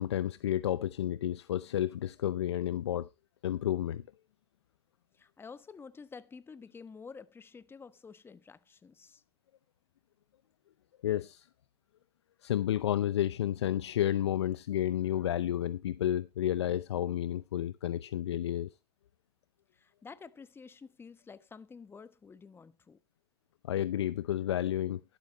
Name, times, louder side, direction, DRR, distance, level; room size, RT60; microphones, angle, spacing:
voice 1, 0.0-3.1 3.4-4.0 11.0-11.5 12.4-18.7 23.6-25.0, left 11 dB, 85° left, 0.6 m, -31 dB
voice 2, 5.1-9.2 19.7-23.0, left 5 dB, 15° left, 1.1 m, -50 dB
12.5 x 12.0 x 3.0 m
hypercardioid pair, 105°, 14 cm